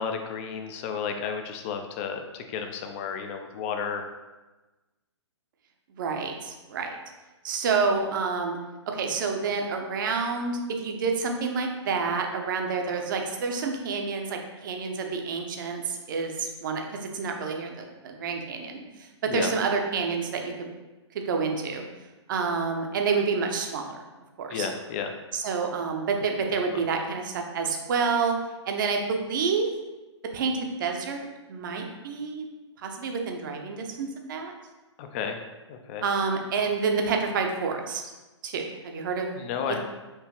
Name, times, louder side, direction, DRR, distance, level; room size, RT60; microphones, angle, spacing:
voice 1, 0.0-4.1 19.3-19.5 24.5-25.1 26.7-26.8 35.0-35.4 35.7-36.0 39.4-39.8, left 6 dB, 25° left, 5 dB, 0.4 m, -32 dB
voice 2, 5.9-7.0 7.4-8.6 8.9-20.7 21.1-21.8 22.3-24.0 24.4-24.7 25.3-28.4 28.7-29.7 30.3-32.5 32.8-34.5 36.0-38.0 38.4-39.3 39.7-39.8, right 5 dB, 45° right, 3 dB, 0.6 m, -28 dB
4.5 x 2.8 x 2.9 m, 1.1 s
figure-of-eight pair, 120°, 15 cm